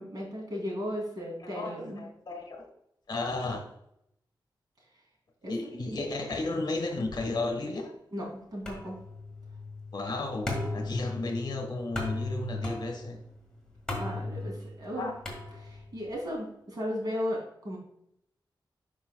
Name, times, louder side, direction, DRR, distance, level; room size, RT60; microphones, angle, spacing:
voice 1, 0.0-2.1 5.4-5.5 5.8-6.0 8.1-9.0 13.9-15.1 15.6-17.8, equal, 55° right, -2 dB, 2.7 m, -35 dB
voice 2, 1.4-2.7 3.1-3.7 5.5-7.9 9.9-13.2 15.0-15.1, left 2 dB, 60° left, 4 dB, 1.3 m, -33 dB
sound 1, 8.7-16.0, left 2 dB, 10° left, 1.8 m, -37 dB
11.0 x 5.3 x 2.2 m, 0.76 s
wide cardioid pair, 140°, 8 cm